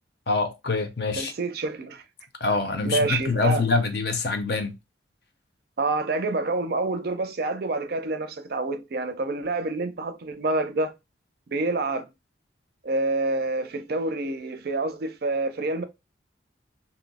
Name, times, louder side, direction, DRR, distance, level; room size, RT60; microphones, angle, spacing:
voice 1, 0.3-1.3 2.4-4.8, left 4 dB, 55° left, 0.6 m, -25 dB
voice 2, 1.1-2.0 2.8-3.6 5.8-10.9 11.5-12.1 12.8-15.8, right 2 dB, 50° right, 0.4 m, -27 dB
2.7 x 2.0 x 4.0 m
head